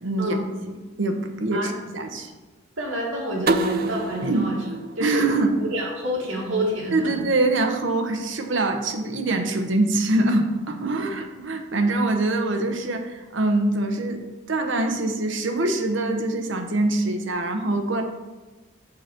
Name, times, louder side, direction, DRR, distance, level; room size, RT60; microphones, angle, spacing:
voice 1, 0.0-0.4 1.0-2.3 4.2-4.5 5.0-5.5 6.9-18.0, right 2 dB, 60° right, 5 dB, 0.9 m, -24 dB
voice 2, 2.8-4.6 5.0-5.3 5.6-7.1 10.9-11.1, right 1 dB, 80° right, -4 dB, 1.8 m, -28 dB
sound 1, 3.5-6.3, right 2 dB, 45° right, 0.4 m, -28 dB
7.7 x 3.9 x 5.9 m, 1.2 s
head